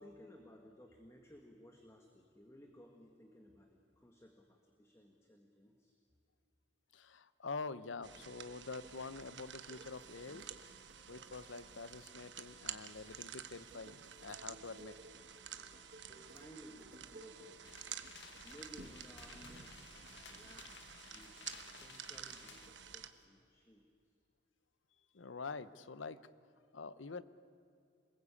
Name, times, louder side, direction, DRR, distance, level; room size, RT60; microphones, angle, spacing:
voice 1, 0.0-5.9 10.3-10.5 16.1-18.0 18.4-20.7 21.1-23.9, equal, 15° left, 3 dB, 1.7 m, -59 dB
voice 2, 6.9-10.5 11.1-15.0 25.1-26.3 26.7-27.2, left 4 dB, 90° left, 15 dB, 0.8 m, -46 dB
sound 1, 8.0-23.1, right 9 dB, 70° right, 1.2 m, -51 dB
sound 2, 8.7-20.0 20.5-20.6 21.1-23.2, right 2 dB, 45° right, 2.0 m, -62 dB
sound 3, 17.6-22.7, left 6 dB, 65° left, 1.6 m, -57 dB
27.5 x 20.5 x 8.4 m, 2.6 s
head